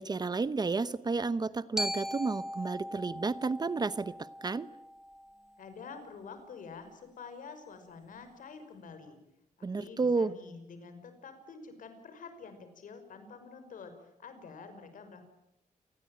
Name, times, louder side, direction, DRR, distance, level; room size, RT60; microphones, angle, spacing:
voice 1, 0.0-4.7 9.6-10.3, right 4 dB, 30° right, 16 dB, 0.9 m, -31 dB
Glockenspiel, 1.8-5.9, equal, 5° right, 1.5 m, -39 dB
voice 2, 5.6-9.2 9.8-15.2, left 5 dB, 75° left, 9 dB, 5.9 m, -48 dB
29.0 x 20.0 x 9.1 m, 0.87 s
wide cardioid pair, 125°, 14 cm